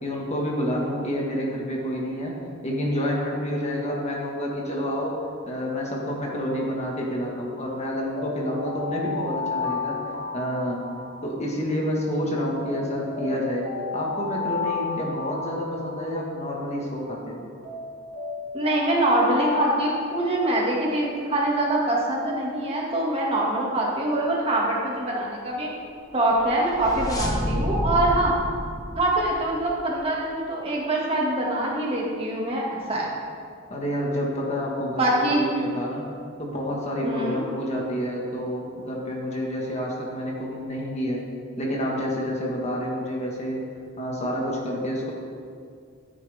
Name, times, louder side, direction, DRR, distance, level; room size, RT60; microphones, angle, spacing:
voice 1, 0.0-2.3 2.6-5.1 5.5-10.0 10.3-10.8 11.2-17.4 33.7-36.0 36.4-41.2 41.6-43.6 44.0-45.1, equal, 35° left, -2 dB, 1.8 m, -28 dB
Alarm, 7.9-12.1 12.6-17.1 17.6-21.4, left 4 dB, 85° right, 2.8 m, -33 dB
voice 2, 18.5-25.7 26.1-28.3 29.0-33.1 35.0-35.4 37.0-37.4, right 1 dB, 30° right, -4 dB, 2.1 m, -24 dB
sound 1, 26.2-29.9, equal, 20° left, 1.2 m, -30 dB
13.5 x 9.3 x 3.6 m, 2.2 s
head